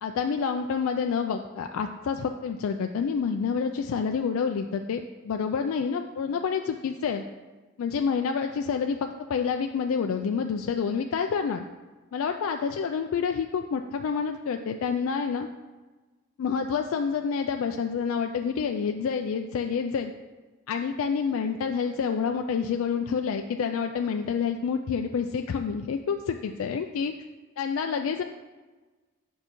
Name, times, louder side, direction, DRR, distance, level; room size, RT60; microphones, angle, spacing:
voice 1, 0.0-7.2 7.8-11.7 12.1-15.5 16.4-20.1 20.7-27.1 27.6-28.2, left 6 dB, 70° left, 5 dB, 0.3 m, -28 dB
8.9 x 5.4 x 3.0 m, 1.3 s
head